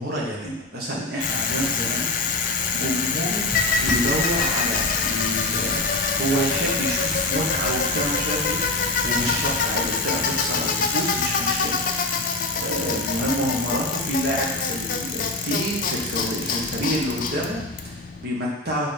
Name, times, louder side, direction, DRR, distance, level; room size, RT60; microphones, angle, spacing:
voice 1, 0.0-2.5 2.7-3.5 3.8-11.8 12.6-18.9, right 1 dB, 50° right, -4 dB, 1.6 m, -28 dB
Bicycle, 1.2-18.3, left 5 dB, 45° left, 0.5 m, -25 dB
sound 1, 3.4-9.8, equal, 5° right, 1.2 m, -34 dB
5.6 x 4.1 x 5.5 m, 0.87 s
head